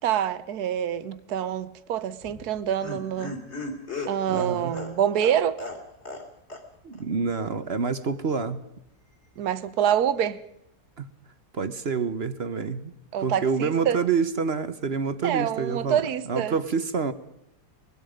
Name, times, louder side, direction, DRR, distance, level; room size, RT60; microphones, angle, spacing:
voice 1, 0.0-3.4 4.1-5.6 9.4-10.4 13.1-14.0 15.2-16.5, right 9 dB, 65° right, 1.4 m, -26 dB
Laughter, 2.2-6.3 6.5-6.6 6.9-7.0, left 2 dB, 40° left, 3.5 m, -36 dB
voice 2, 4.3-4.7 6.8-8.6 11.0-11.1 11.5-12.9 13.2-16.0 16.3-17.1, right 5 dB, 45° right, 1.0 m, -27 dB
24.5 x 21.5 x 5.1 m
omnidirectional pair, 1.8 m